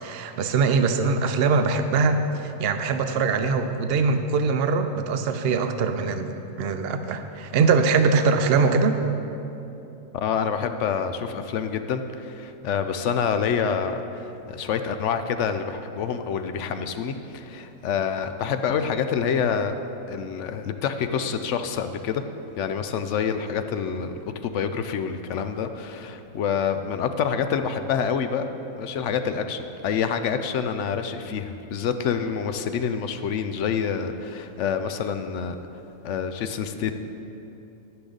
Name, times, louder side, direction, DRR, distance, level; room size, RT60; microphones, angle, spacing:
voice 1, 0.0-9.0, right 4 dB, 55° right, 8 dB, 0.7 m, -22 dB
voice 2, 10.1-19.7 20.1-22.2 22.6-24.1 24.4-28.5 28.8-35.6 36.0-36.9, left 7 dB, 65° left, 9 dB, 0.8 m, -27 dB
11.5 x 9.7 x 3.9 m, 2.9 s
omnidirectional pair, 1.5 m